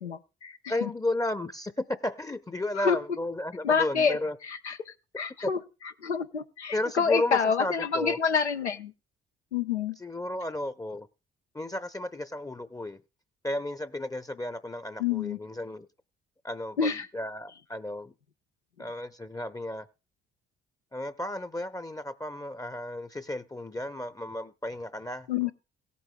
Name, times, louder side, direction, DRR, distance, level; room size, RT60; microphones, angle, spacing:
voice 1, 0.0-0.9 2.8-3.0 3.6-4.2 4.4-4.8 5.2-5.6 6.0-8.9 9.5-10.0 15.0-15.4 16.8-17.1 25.3-25.5, left 6 dB, 90° left, 0.6 m, -27 dB
voice 2, 0.7-4.4 5.4-5.5 6.7-8.2 10.0-11.1 11.5-13.0 13.4-15.9 16.4-18.1 18.8-19.9 20.9-25.5, left 1 dB, 10° left, 0.7 m, -33 dB
18.0 x 8.3 x 2.2 m
figure-of-eight pair, 45°, 33 cm